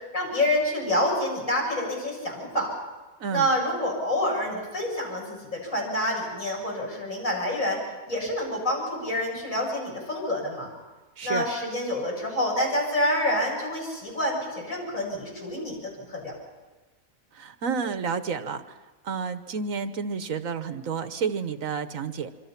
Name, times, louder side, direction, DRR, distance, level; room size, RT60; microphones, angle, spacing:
voice 1, 0.1-2.7 3.3-7.8 8.1-10.7 11.2-16.3, left 1 dB, 65° left, -2 dB, 8.0 m, -27 dB
voice 2, 17.3-18.8 19.0-22.3, right 6 dB, 70° right, 10 dB, 1.4 m, -30 dB
26.5 x 24.5 x 5.9 m, 1.2 s
omnidirectional pair, 1.5 m